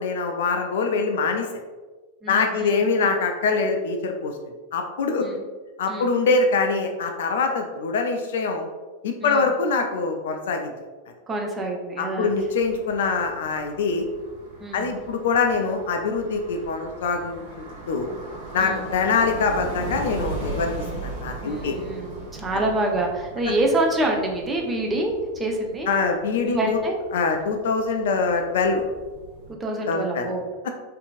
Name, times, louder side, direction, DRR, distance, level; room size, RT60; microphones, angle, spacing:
voice 1, 0.0-1.5 2.3-4.3 4.7-5.3 5.8-8.7 9.0-10.7 12.0-14.1 14.7-17.4 17.7-18.1 18.5-20.7 21.0-21.8 25.9-26.8 27.1-28.8 29.9-30.3, left 4 dB, 60° left, 5 dB, 0.3 m, -24 dB
voice 2, 2.2-2.7 5.2-5.4 5.9-6.1 9.2-9.5 11.3-12.3 14.6-14.9 18.6-18.9 21.4-25.9 26.4-26.9 29.5-30.7, right 1 dB, 15° right, 1 dB, 0.5 m, -27 dB
sound 1, 12.2-29.5, right 2 dB, 45° right, 1.0 m, -38 dB
2.8 x 2.5 x 2.4 m, 1.3 s
figure-of-eight pair, 90°, 0 cm